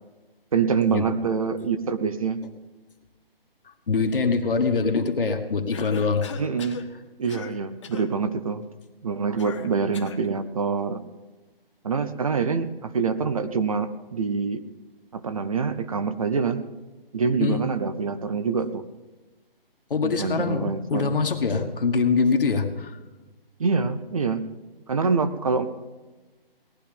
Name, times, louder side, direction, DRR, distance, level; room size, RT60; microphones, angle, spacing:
voice 1, 0.5-2.4 6.4-6.8 7.2-8.6 9.0-11.0 11.8-14.6 15.1-16.6 17.1-18.8 20.0-21.1 23.6-24.4 24.9-25.6, right 5 dB, 35° right, 11 dB, 0.7 m, -25 dB
voice 2, 3.9-6.3 17.4-17.6 19.9-23.0, left 4 dB, 65° left, 5 dB, 1.8 m, -23 dB
Cough, 5.7-6.9 7.3-7.6 7.8-8.1 9.4-10.3, left 6 dB, 30° left, 1.0 m, -39 dB
18.5 x 11.0 x 5.2 m, 1.2 s
figure-of-eight pair, 160°, 30 cm